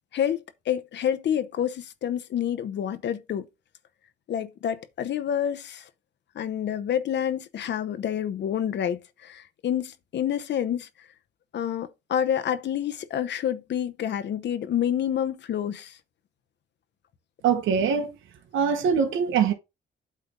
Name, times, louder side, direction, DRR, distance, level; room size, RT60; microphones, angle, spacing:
voice 1, 0.1-3.5 4.3-5.9 6.3-10.9 11.5-16.0, left 9 dB, 60° left, 0.9 m, -28 dB
voice 2, 17.4-18.2 18.5-19.5, right 7 dB, 80° right, 1.2 m, -23 dB
8.4 x 3.4 x 5.1 m
cardioid pair, 90°, 20 cm